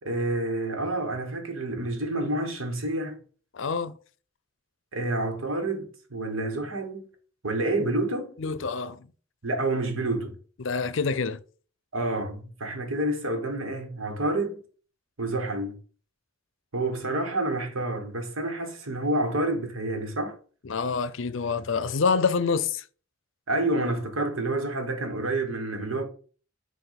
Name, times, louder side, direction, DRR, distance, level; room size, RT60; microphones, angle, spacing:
voice 1, 0.0-3.2 4.9-7.1 7.4-8.3 9.4-10.3 11.9-14.6 15.2-15.8 16.7-20.4 23.5-26.0, right 2 dB, 85° right, 1.5 m, -28 dB
voice 2, 3.5-4.0 8.4-9.1 10.6-11.4 20.6-22.8, left 5 dB, 65° left, 0.6 m, -27 dB
7.9 x 2.6 x 5.8 m
head